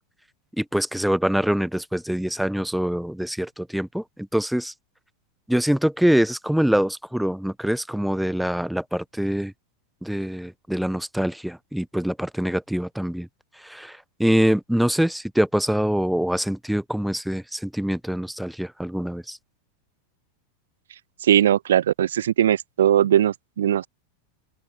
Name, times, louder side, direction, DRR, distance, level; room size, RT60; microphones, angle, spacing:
voice 1, 0.6-4.7 5.5-9.5 10.0-13.3 13.6-19.4, equal, ahead, 1.0 m, -24 dB
voice 2, 21.2-23.9, right 10 dB, 60° right, 0.4 m, -19 dB
open air
figure-of-eight pair, 90°, 0 cm